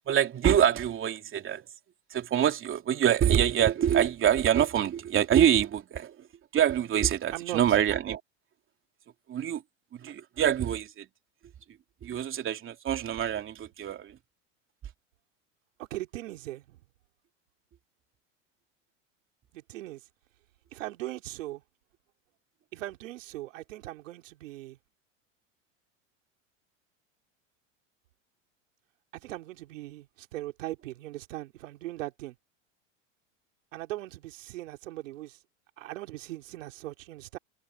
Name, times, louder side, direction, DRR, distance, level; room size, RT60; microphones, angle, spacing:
voice 1, 0.1-1.6 2.1-6.3 6.5-8.2 9.3-9.6 9.9-11.1 12.0-14.2, right 10 dB, 35° right, 3.2 m, -25 dB
voice 2, 15.8-16.8 19.5-20.0 20.7-21.6 22.7-24.8 29.1-32.3 33.7-35.4 35.8-37.4, right 16 dB, 80° right, 3.0 m, -39 dB
hypercardioid pair, 105°, 38 cm